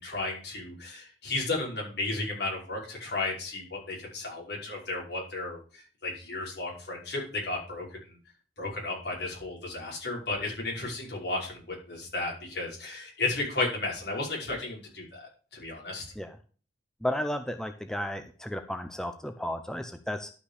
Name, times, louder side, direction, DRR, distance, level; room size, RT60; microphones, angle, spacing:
voice 1, 0.0-8.2 8.6-16.0, left 2 dB, 65° left, -3 dB, 5.6 m, -34 dB
voice 2, 17.0-20.3, left 1 dB, 5° left, 7 dB, 0.7 m, -33 dB
12.0 x 5.7 x 4.9 m, 0.38 s
head